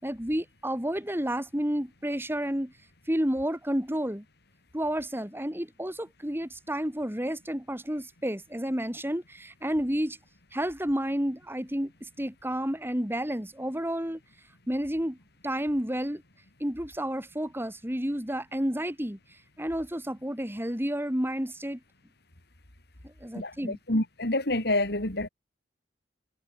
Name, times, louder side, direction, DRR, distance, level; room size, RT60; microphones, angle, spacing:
voice 1, 0.0-2.7 3.1-4.2 4.7-10.2 10.5-14.2 14.7-15.2 15.4-16.2 16.6-19.2 19.6-21.8 23.0-23.8, equal, 15° right, 4.9 m, -30 dB
voice 2, 23.3-25.3, left 1 dB, 65° left, 5.4 m, -28 dB
head